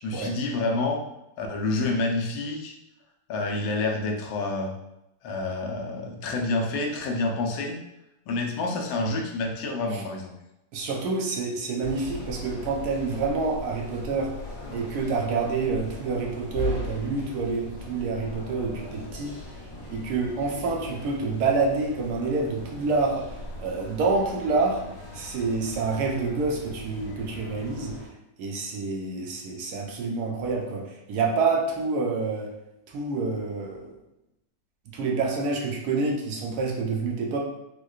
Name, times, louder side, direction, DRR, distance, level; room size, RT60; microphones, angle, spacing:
voice 1, 0.0-1.0 1.4-2.7 3.3-4.8 5.2-7.8 8.3-10.3, left 2 dB, 80° left, 1 dB, 1.4 m, -28 dB
voice 2, 10.7-14.3 14.7-19.4 19.9-23.3 23.6-24.8 25.1-28.0 28.4-32.5 32.9-34.0 34.9-37.4, right 4 dB, 70° right, 0 dB, 0.9 m, -27 dB
sound 1, 11.8-28.1, left 2 dB, 45° left, 1.7 m, -39 dB
4.5 x 2.1 x 2.3 m, 0.88 s
omnidirectional pair, 2.1 m